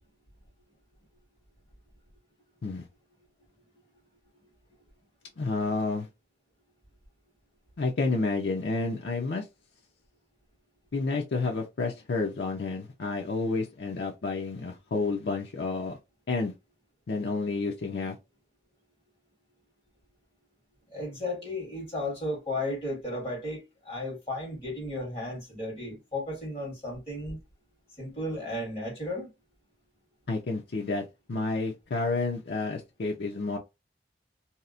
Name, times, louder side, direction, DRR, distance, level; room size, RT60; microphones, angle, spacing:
voice 1, 5.4-6.1 7.8-9.5 10.9-16.0 16.3-16.5 17.1-18.2 30.3-33.6, left 3 dB, 75° left, 0.5 m, -30 dB
voice 2, 20.9-27.4 28.0-29.3, left 1 dB, 30° left, 1.5 m, -34 dB
2.7 x 2.0 x 2.4 m
head